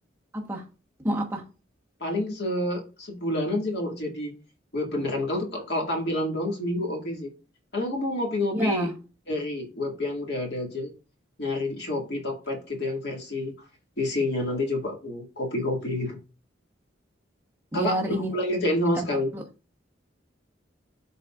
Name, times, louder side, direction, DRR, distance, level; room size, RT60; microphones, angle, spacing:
voice 1, 1.0-1.4 8.5-8.9 17.7-18.3 18.9-19.0 19.3-19.4, right 1 dB, 10° right, 1.1 m, -27 dB
voice 2, 2.0-4.3 4.7-7.3 7.7-8.9 9.3-10.9 11.4-13.5 14.0-16.2 17.7-18.0 18.3-19.3, left 1 dB, 60° left, 2.0 m, -28 dB
12.0 x 4.1 x 2.4 m
head